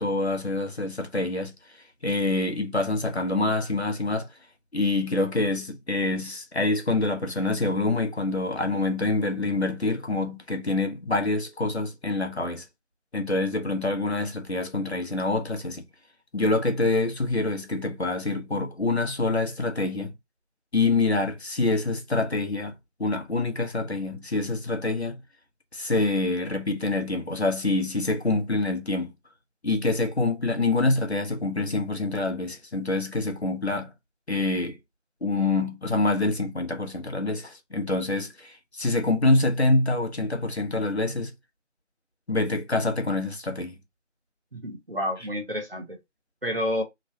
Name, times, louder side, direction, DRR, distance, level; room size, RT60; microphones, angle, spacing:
voice 1, 0.0-1.8 2.0-4.3 4.7-12.6 13.1-15.9 16.3-20.1 20.7-25.2 25.7-29.1 29.6-33.9 34.3-34.8 35.2-41.3 42.3-43.7, left 2 dB, 60° left, 0.8 m, -26 dB
voice 2, 44.5-46.0 46.4-46.8, equal, 50° right, 0.9 m, -29 dB
3.0 x 2.1 x 2.7 m
figure-of-eight pair, 180°, 37 cm